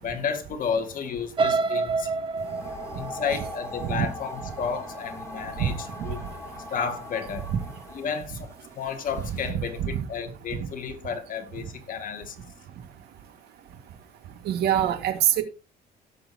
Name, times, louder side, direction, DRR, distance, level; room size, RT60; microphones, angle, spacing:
voice 1, 0.0-2.1 2.9-6.2 6.7-7.5 7.9-12.5, left 6 dB, 55° left, 2.0 m, -32 dB
sound 1, 1.4-5.3 5.8-6.1 6.5-6.6, right 4 dB, 30° right, 1.3 m, -29 dB
sound 2, 2.4-9.5, left 1 dB, 15° left, 4.4 m, -41 dB
voice 2, 14.5-15.4, right 11 dB, 75° right, 2.0 m, -24 dB
17.0 x 7.0 x 2.9 m
cardioid pair, 110°, 17 cm